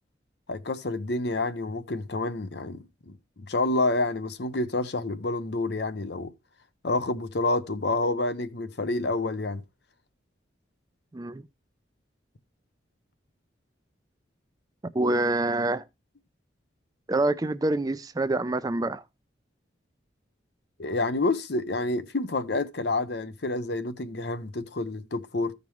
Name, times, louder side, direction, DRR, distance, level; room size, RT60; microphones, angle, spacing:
voice 1, 0.5-6.3 6.8-9.6 20.8-25.5, left 2 dB, 60° left, 0.7 m, -28 dB
voice 2, 11.1-11.4 14.9-15.8 17.1-19.0, right 2 dB, 20° right, 0.4 m, -26 dB
15.0 x 5.3 x 3.1 m
head